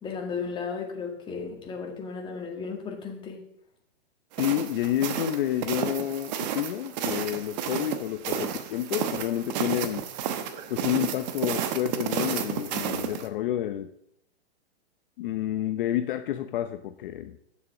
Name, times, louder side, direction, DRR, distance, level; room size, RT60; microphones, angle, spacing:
voice 1, 0.0-3.4, left 5 dB, 15° left, 0 dB, 2.0 m, -34 dB
sound 1, 4.3-13.3, right 8 dB, 40° right, 1.1 m, -32 dB
voice 2, 4.4-10.1 10.7-13.9 15.2-17.4, left 12 dB, 55° left, 8 dB, 0.7 m, -29 dB
9.1 x 7.1 x 5.9 m, 0.74 s
hypercardioid pair, 150°, 32 cm